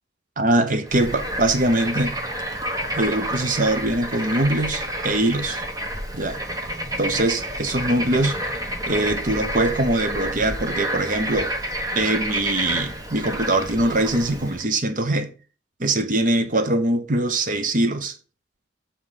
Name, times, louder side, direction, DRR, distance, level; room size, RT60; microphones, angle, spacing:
voice 1, 0.4-2.1 2.9-5.6 6.1-6.4 7.0-8.4 8.9-11.5 11.9-15.3 15.8-18.1, right 1 dB, 45° right, 0.9 m, -22 dB
Bird / Frog, 0.9-14.6, right 1 dB, 20° right, 1.0 m, -29 dB
7.2 x 5.0 x 5.5 m
head